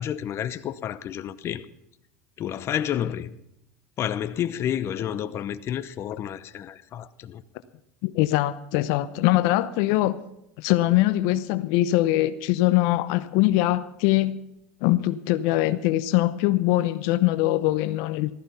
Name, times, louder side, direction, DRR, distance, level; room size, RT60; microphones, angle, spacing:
voice 1, 0.0-1.7 2.4-3.3 4.0-7.4, left 10 dB, 40° left, 0.8 m, -30 dB
voice 2, 8.0-10.2 10.6-14.4 14.8-18.3, left 16 dB, 65° left, 0.8 m, -22 dB
15.0 x 14.0 x 5.7 m
supercardioid pair, 110°, 7 cm